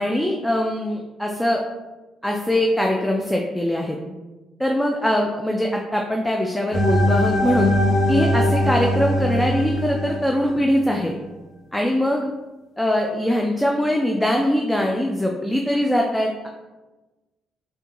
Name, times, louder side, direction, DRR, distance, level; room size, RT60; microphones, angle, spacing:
voice 1, 0.0-1.6 2.2-4.0 4.6-7.7 8.1-11.1 11.7-12.3 12.8-16.5, equal, 5° left, 0 dB, 0.3 m, -22 dB
sound 1, 6.7-10.7, left 1 dB, 60° left, 1.3 m, -21 dB
3.6 x 2.2 x 2.9 m, 1.1 s
cardioid pair, 90°, 0 cm